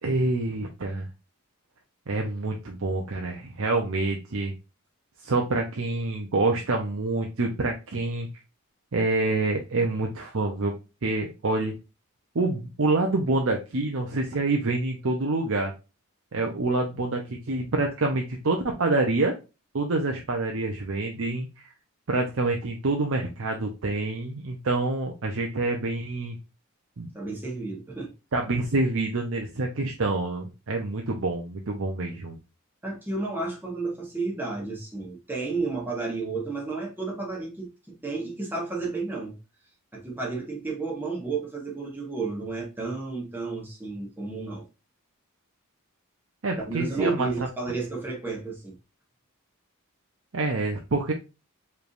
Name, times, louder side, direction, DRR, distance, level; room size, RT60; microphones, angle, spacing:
voice 1, 0.0-1.1 2.1-4.5 5.2-8.3 8.9-10.7 11.0-11.7 12.3-15.7 16.3-19.4 19.7-21.7 22.1-26.4 27.0-27.1 28.3-32.4 46.4-47.3 50.3-51.1, right 2 dB, 65° right, 0.7 m, -27 dB
voice 2, 27.1-28.1 32.8-37.7 38.0-39.3 39.9-44.6 46.6-48.7, right 3 dB, 10° right, 1.3 m, -32 dB
5.0 x 3.3 x 2.5 m
head